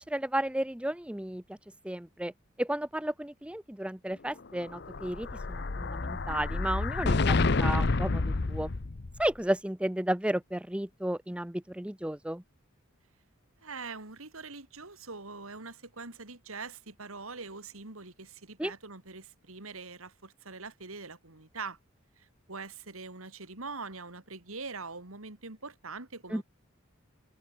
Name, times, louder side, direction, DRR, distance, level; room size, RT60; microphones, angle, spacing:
voice 1, 0.0-1.6 1.8-2.3 2.6-8.2 8.5-8.7 9.2-12.4 18.6-18.7 26.3-26.4, right 1 dB, 5° right, 0.6 m, -33 dB
Explosion, 4.6-9.3, left 3 dB, 50° left, 0.8 m, -29 dB
voice 2, 13.6-21.8 22.2-26.4, right 4 dB, 90° right, 3.3 m, -43 dB
head